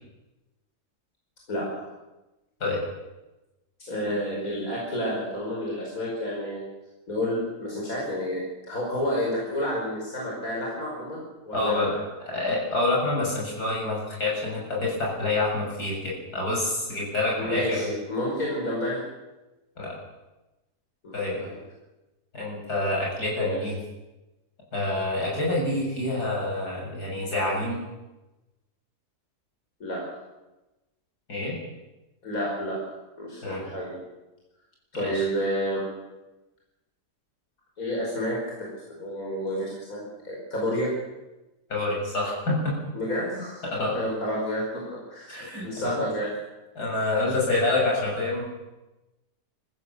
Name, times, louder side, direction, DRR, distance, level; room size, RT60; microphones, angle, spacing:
voice 1, 3.8-6.6 7.1-11.8 17.4-19.0 21.0-21.5 23.4-23.6 29.8-30.0 32.2-32.8 33.2-33.9 34.9-35.8 37.8-40.9 42.9-44.8 45.1-45.3 45.6-46.3, equal, 60° left, -3 dB, 6.0 m, -30 dB
voice 2, 11.5-11.9 12.3-17.9 19.8-20.0 21.1-21.5 22.3-23.7 24.7-27.8 31.3-31.6 33.4-33.7 34.9-35.3 41.7-42.7 43.6-43.9 45.3-46.0 46.8-48.4, left 2 dB, 75° left, -3 dB, 7.5 m, -27 dB
25.0 x 15.0 x 7.2 m, 1.1 s
omnidirectional pair, 1.7 m